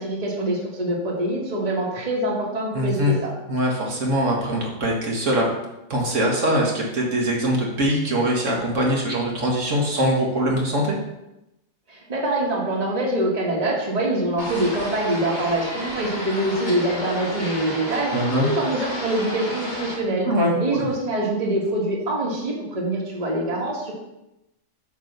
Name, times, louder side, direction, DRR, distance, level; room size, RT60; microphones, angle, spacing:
voice 1, 0.0-3.3 11.9-20.3 20.6-23.9, right 1 dB, 30° right, -2 dB, 1.5 m, -24 dB
voice 2, 2.7-3.1 3.5-5.5 5.9-11.0 18.1-18.5 20.3-20.5, equal, 65° right, -2 dB, 1.7 m, -22 dB
sound 1, 14.4-19.9, equal, 35° left, 1.9 m, -32 dB
8.2 x 3.3 x 6.6 m, 0.91 s
omnidirectional pair, 1.4 m